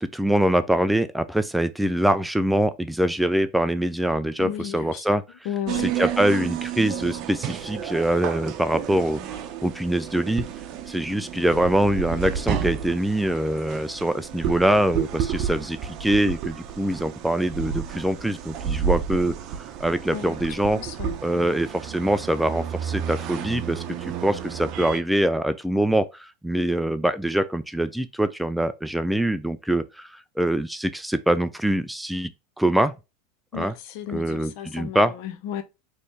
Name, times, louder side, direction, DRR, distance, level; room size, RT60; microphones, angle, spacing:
voice 1, 0.0-5.2 5.7-10.4 10.9-19.4 19.8-20.8 21.2-32.3 32.6-32.9 33.5-33.7 34.1-35.1, right 1 dB, 5° right, 0.4 m, -24 dB
voice 2, 4.4-5.0 5.4-5.9 20.1-20.4 20.7-21.7 33.5-35.6, left 9 dB, 60° left, 0.8 m, -34 dB
sound 1, 5.7-25.0, right 8 dB, 50° right, 0.7 m, -31 dB
4.4 x 3.2 x 3.3 m
supercardioid pair, 115°, 0 cm